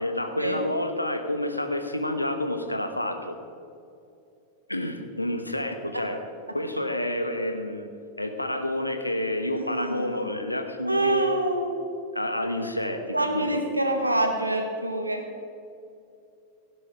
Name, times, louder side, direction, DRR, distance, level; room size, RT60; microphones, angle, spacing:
voice 1, 0.0-3.4 4.7-6.2 6.5-7.9 8.2-11.3 12.1-13.6, left 1 dB, 85° left, 6 dB, 1.2 m, -29 dB
voice 2, 9.5-10.3 10.8-11.8 13.1-15.3, right 1 dB, 85° right, 4 dB, 1.7 m, -26 dB
16.5 x 9.6 x 4.8 m, 2.6 s
figure-of-eight pair, 90°, 0 cm